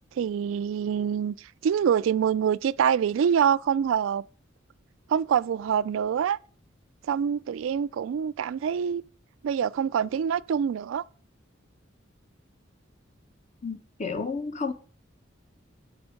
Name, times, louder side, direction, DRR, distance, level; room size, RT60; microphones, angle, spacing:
voice 1, 0.2-4.2 5.1-6.4 7.1-9.0 9.4-11.0, right 8 dB, 80° right, 0.3 m, -25 dB
voice 2, 13.6-14.7, left 4 dB, 35° left, 0.8 m, -31 dB
7.8 x 6.0 x 5.1 m
head